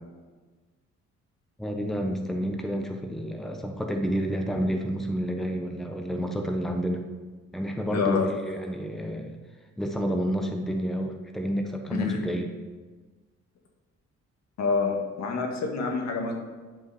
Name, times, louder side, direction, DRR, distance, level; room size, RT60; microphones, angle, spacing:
voice 1, 1.6-7.0 7.5-9.4 9.8-12.5, equal, ahead, 3 dB, 0.9 m, -29 dB
voice 2, 7.9-8.3 11.9-12.2 14.6-16.3, left 5 dB, 65° left, 1 dB, 1.7 m, -27 dB
9.7 x 5.5 x 4.8 m, 1.4 s
cardioid pair, 90°, 30 cm